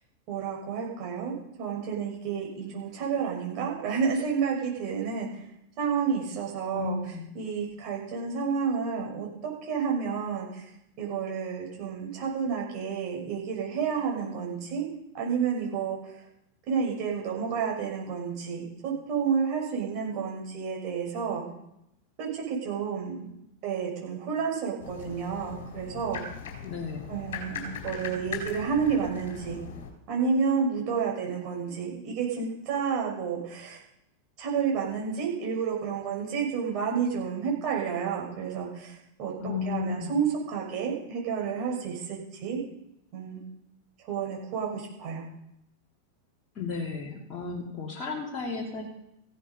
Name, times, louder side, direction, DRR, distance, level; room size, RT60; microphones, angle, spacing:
voice 1, 0.3-5.3 5.8-7.0 7.3-10.7 11.0-14.8 15.1-16.1 16.7-21.4 22.2-23.3 23.6-26.2 27.1-29.6 30.1-33.8 34.4-42.6 43.1-43.5 44.0-45.2, right 6 dB, 40° right, -1 dB, 5.9 m, -30 dB
voice 2, 6.7-7.3 26.6-27.2 39.4-40.1 46.5-48.9, left 4 dB, 30° left, -1 dB, 2.8 m, -34 dB
sound 1, 24.8-29.9, left 6 dB, 55° left, 3.9 m, -39 dB
15.5 x 12.5 x 5.4 m, 0.82 s
figure-of-eight pair, 90°, 0 cm